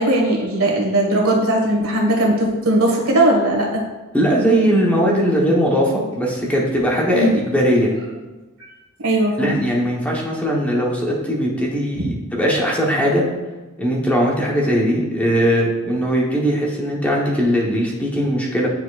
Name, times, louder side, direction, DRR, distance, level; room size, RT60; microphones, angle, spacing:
voice 1, 0.0-3.8 7.1-7.4 9.0-9.6 11.9-12.1, right 1 dB, 80° right, -1 dB, 1.5 m, -18 dB
voice 2, 4.1-7.9 9.4-13.2 13.8-18.7, equal, 5° left, -3 dB, 0.9 m, -19 dB
9.6 x 4.4 x 2.4 m, 1.2 s
head